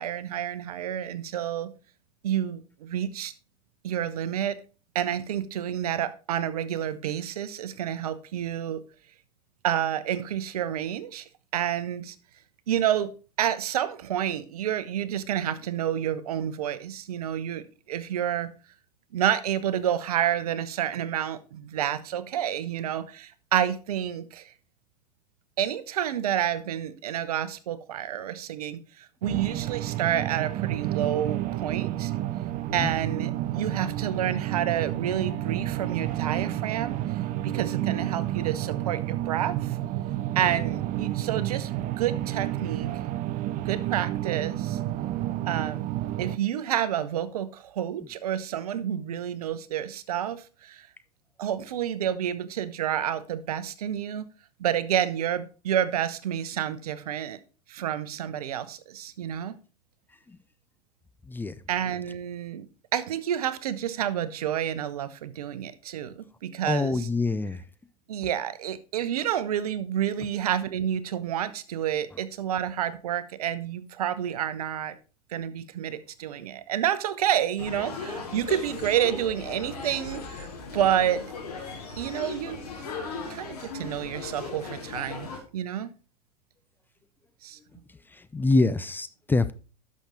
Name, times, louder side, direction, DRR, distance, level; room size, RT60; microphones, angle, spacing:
voice 1, 0.0-1.7 2.2-3.3 3.8-4.6 4.9-8.8 9.6-11.2 11.5-12.1 12.7-13.1 13.4-18.5 19.1-24.5 25.6-32.1 32.7-37.0 37.4-39.8 40.3-42.9 43.7-44.8 45.5-45.8 46.2-50.9 51.4-54.3 54.6-57.4 57.7-59.6 61.7-62.7 62.9-67.1 68.1-75.0 75.3-80.5 80.7-81.3 82.0-82.6 82.9-85.3 85.5-85.9 87.4-87.6, right 10 dB, 70° right, 15 dB, 0.9 m, -29 dB
sound 1, 29.2-46.4, right 14 dB, 40° right, 0.6 m, -30 dB
voice 2, 66.6-67.6 88.1-89.5, left 3 dB, 10° left, 13 dB, 0.5 m, -25 dB
sound 2, 77.6-85.4, left 4 dB, 70° left, 3.6 m, -37 dB
11.5 x 6.3 x 3.8 m, 0.34 s
figure-of-eight pair, 85°, 20 cm